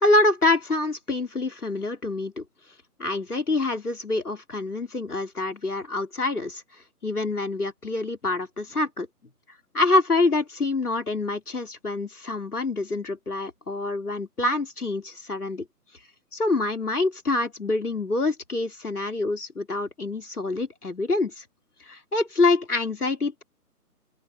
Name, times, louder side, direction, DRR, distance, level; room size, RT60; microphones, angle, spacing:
voice 1, 0.0-2.4 3.0-6.6 7.0-9.1 9.7-15.6 16.3-21.4 21.9-23.4, left 2 dB, 70° left, 4.2 m, -26 dB
open air
figure-of-eight pair, 145°, 47 cm